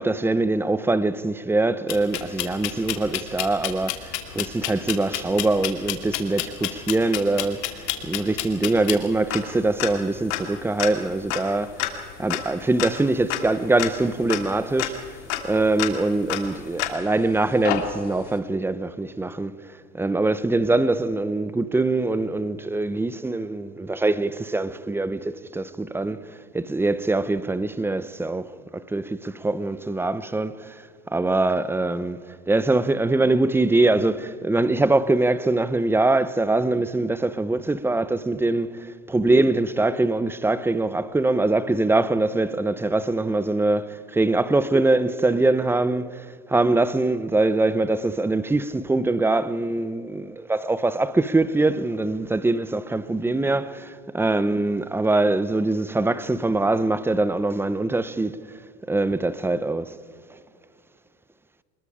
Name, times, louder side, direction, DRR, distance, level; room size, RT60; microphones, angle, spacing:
voice 1, 0.0-7.7 8.0-11.9 12.2-30.8 31.1-32.2 32.5-58.4 58.9-59.9, right 2 dB, 5° right, 0.7 m, -23 dB
sound 1, 1.9-17.2 17.6-18.3, left 12 dB, 75° left, 2.9 m, -31 dB
26.0 x 21.0 x 5.0 m
supercardioid pair, 125°, 35 cm